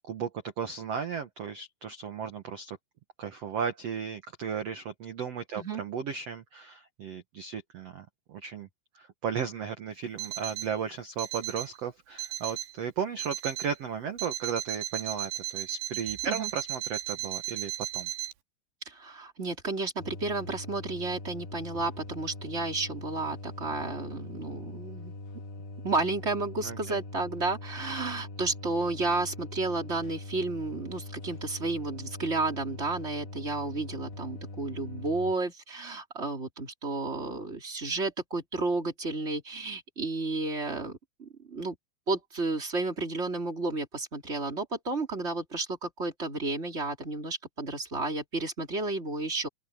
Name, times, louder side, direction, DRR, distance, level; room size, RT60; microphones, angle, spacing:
voice 1, 0.6-2.8 3.2-8.7 8.9-18.1 26.6-27.0, right 7 dB, 75° right, 1.4 m, -35 dB
Alarm, 10.2-10.8 11.2-11.8 12.2-12.8 13.2-13.8 14.2-18.3, right 14 dB, 90° right, 3.7 m, -36 dB
voice 2, 18.9-25.1 25.8-41.8 42.1-49.5, right 3 dB, 15° right, 3.6 m, -32 dB
sound 1, 20.0-35.3, left 2 dB, 75° left, 4.2 m, -42 dB
open air
omnidirectional pair, 4.9 m